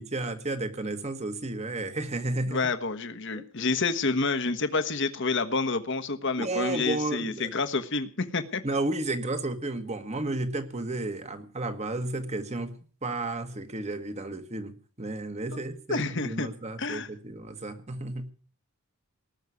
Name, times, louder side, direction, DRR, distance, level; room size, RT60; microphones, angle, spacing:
voice 1, 0.0-2.7 3.3-3.4 6.4-7.6 8.6-18.3, right 2 dB, 30° right, 9 dB, 1.6 m, -32 dB
voice 2, 2.5-8.6 15.5-15.6 15.9-16.5 16.8-17.1, left 3 dB, 55° left, 10 dB, 1.3 m, -28 dB
19.0 x 6.4 x 9.6 m, 0.41 s
head